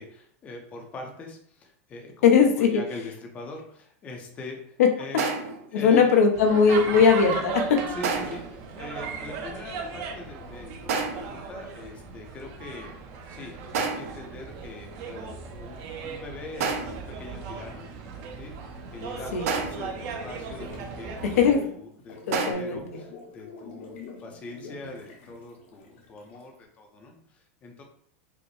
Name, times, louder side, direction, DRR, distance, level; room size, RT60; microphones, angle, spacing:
voice 1, 0.0-5.3 5.7-6.1 6.7-7.1 7.9-12.9 13.3-17.9 18.4-27.8, left 2 dB, 15° left, 2 dB, 0.6 m, -42 dB
voice 2, 2.2-2.7 4.8-4.9 5.7-7.8 19.3-19.4 21.2-21.7 22.3-22.8, left 6 dB, 85° left, 3 dB, 0.8 m, -19 dB
sound 1, 5.2-5.7 8.0-8.5 10.9-11.4 13.7-14.3 16.6-17.1 19.5-20.0 22.3-22.5, right 5 dB, 70° right, 0.8 m, -29 dB
sound 2, 6.3-21.6, right 5 dB, 35° right, 0.6 m, -37 dB
sound 3, 19.8-26.6, left 3 dB, 55° left, 0.9 m, -47 dB
4.9 x 2.1 x 3.1 m, 0.63 s
supercardioid pair, 170°, 8 cm